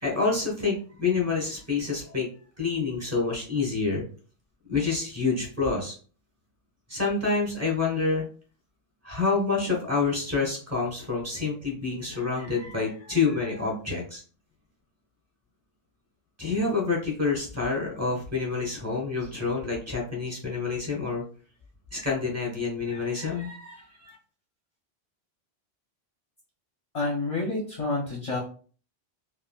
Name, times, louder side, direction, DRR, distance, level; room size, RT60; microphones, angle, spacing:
voice 1, 0.0-2.3 2.6-4.1 4.7-5.9 6.9-8.3 9.0-14.2 16.4-21.2 21.9-24.1, left 4 dB, 15° right, -1 dB, 1.0 m, -27 dB
voice 2, 26.9-28.4, left 3 dB, 40° left, -2 dB, 0.6 m, -28 dB
3.5 x 2.2 x 2.2 m, 0.40 s
omnidirectional pair, 1.1 m